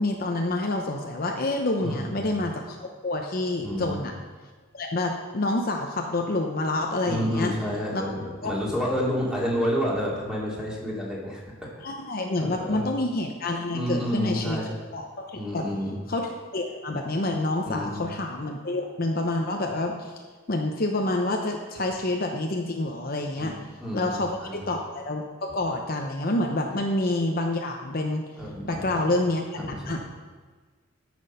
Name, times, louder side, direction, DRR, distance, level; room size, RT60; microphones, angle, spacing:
voice 1, 0.0-4.1 4.7-7.5 7.9-8.0 8.4-8.6 11.8-14.6 14.9-15.6 16.1-16.2 16.5-20.1 20.5-23.6 23.9-28.2 28.6-30.0, left 2 dB, 45° left, 2 dB, 0.8 m, -28 dB
voice 2, 1.8-2.3 3.6-4.0 7.1-11.4 12.4-12.9 13.7-14.8 15.3-16.0 17.7-18.0 23.4-24.7 28.4-29.2 29.6-30.1, equal, 5° right, -5 dB, 2.5 m, -30 dB
13.5 x 6.2 x 5.6 m, 1.4 s
head